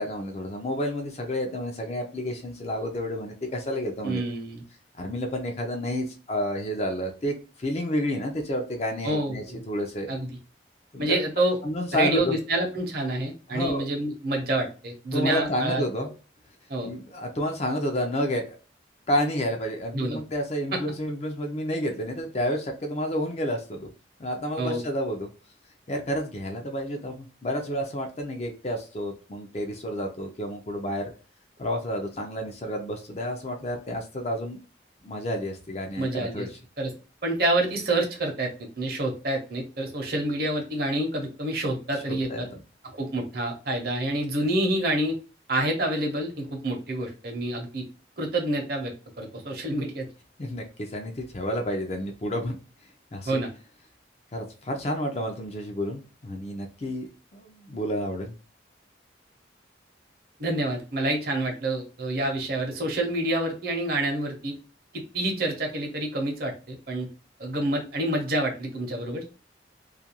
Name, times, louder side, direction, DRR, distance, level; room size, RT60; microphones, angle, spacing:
voice 1, 0.0-4.2 5.0-10.2 10.9-11.2 11.6-12.3 13.5-13.9 15.1-16.1 16.8-18.6 19.1-23.9 24.2-25.3 25.9-31.1 31.6-34.6 35.0-36.5 42.1-42.5 50.4-52.6 53.1-53.4 54.3-58.3, equal, 35° left, 3 dB, 0.4 m, -30 dB
voice 2, 4.0-4.6 9.0-9.6 10.1-10.3 11.0-11.6 11.9-15.8 16.7-16.9 19.9-20.2 24.6-24.8 36.0-36.5 36.8-36.9 37.2-38.5 38.8-42.5 43.0-45.2 45.5-47.8 48.2-50.1 53.2-53.5 60.4-64.5 64.9-67.1 67.4-69.2, right 1 dB, 55° right, 2 dB, 0.7 m, -27 dB
2.4 x 2.2 x 2.8 m, 0.35 s
head